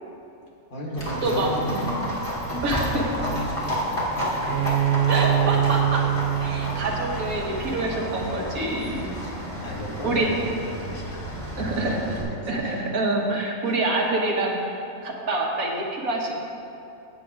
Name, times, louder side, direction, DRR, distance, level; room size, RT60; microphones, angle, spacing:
voice 1, 0.7-5.3 9.1-12.9 13.7-13.8, equal, 80° left, -3 dB, 2.1 m, -35 dB
Livestock farm animals working animals, 1.0-12.2, equal, 20° left, 2.3 m, -31 dB
voice 2, 1.2-1.9 2.6-3.0 5.1-6.0 6.4-9.1 10.0-10.3 11.6-12.0 12.5-16.5, right 2 dB, 85° right, -1 dB, 1.7 m, -26 dB
Bowed string instrument, 4.5-8.1, right 12 dB, 65° right, 0.6 m, -25 dB
16.0 x 8.5 x 2.5 m, 2.7 s
omnidirectional pair, 1.5 m